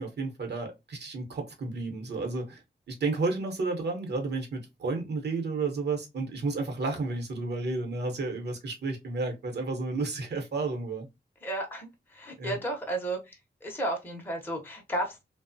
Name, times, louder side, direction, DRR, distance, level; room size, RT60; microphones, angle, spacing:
voice 1, 0.0-2.6 2.9-11.1 12.4-12.6, right 3 dB, 75° right, 0.8 m, -32 dB
voice 2, 11.4-13.4 13.6-15.2, right 1 dB, 10° left, 0.6 m, -33 dB
2.8 x 2.0 x 2.6 m
wide cardioid pair, 130°, 18 cm